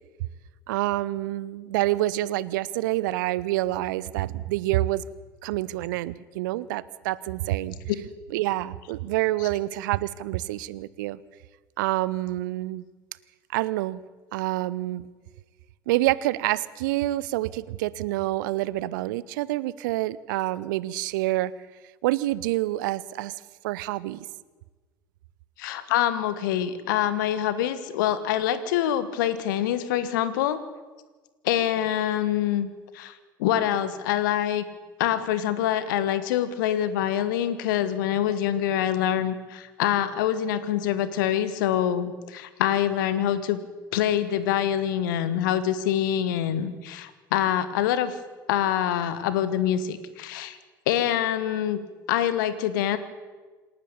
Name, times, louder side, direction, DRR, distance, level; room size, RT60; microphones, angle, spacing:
voice 1, 0.7-5.0 5.4-7.8 8.3-11.2 11.8-12.8 13.5-14.0 14.3-15.1 15.9-21.5 22.0-23.3 23.6-24.3, right 16 dB, 65° right, 20 dB, 0.7 m, -27 dB
voice 2, 25.6-30.6 31.4-34.6 35.0-43.6 43.9-48.1 48.5-50.6 50.9-51.8 52.1-53.0, left 11 dB, 65° left, 13 dB, 1.6 m, -25 dB
27.0 x 12.0 x 8.7 m, 1.3 s
figure-of-eight pair, 65°, 11 cm